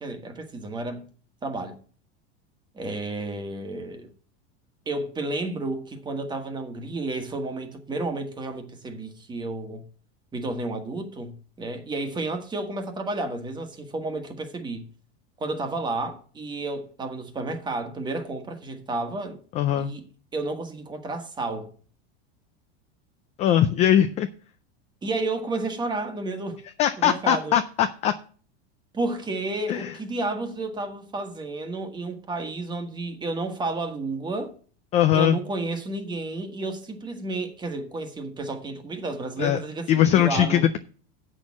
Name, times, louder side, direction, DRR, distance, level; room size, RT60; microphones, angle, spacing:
voice 1, 0.0-1.0 1.4-1.8 2.7-4.1 4.9-9.8 10.3-14.9 15.4-19.4 19.7-20.0 20.3-21.7 25.0-26.6 27.0-27.6 28.9-34.5 35.1-40.6, right 2 dB, 15° right, 1.4 m, -31 dB
voice 2, 19.5-19.9 23.4-24.3 26.8-28.1 29.7-29.9 34.9-35.4 39.4-39.6 39.9-40.8, left 10 dB, 20° left, 0.3 m, -21 dB
8.0 x 6.4 x 7.1 m
supercardioid pair, 155°, 31 cm